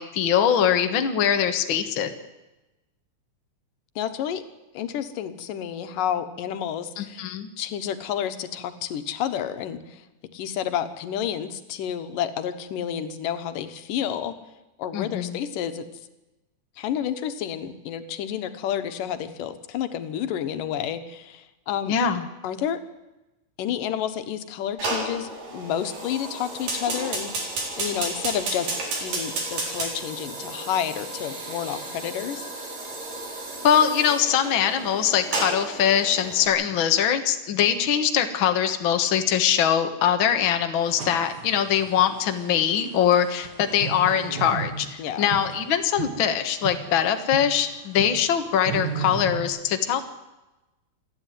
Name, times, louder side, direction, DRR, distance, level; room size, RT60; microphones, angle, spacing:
voice 1, 0.0-2.1 7.0-7.5 14.9-15.4 21.9-22.3 33.6-50.0, left 9 dB, 50° left, 7 dB, 1.8 m, -22 dB
voice 2, 4.0-4.4 4.7-7.3 7.6-10.0 10.3-14.3 14.8-15.9 16.8-22.0 22.4-22.8 23.6-32.7 45.0-45.4, left 9 dB, 90° left, 9 dB, 2.9 m, -30 dB
Fire, 24.8-36.5, right 2 dB, 90° right, 5.8 m, -32 dB
sound 1, 40.8-49.4, right 6 dB, 40° right, 1.8 m, -36 dB
27.0 x 11.0 x 9.3 m, 1.0 s
omnidirectional pair, 3.7 m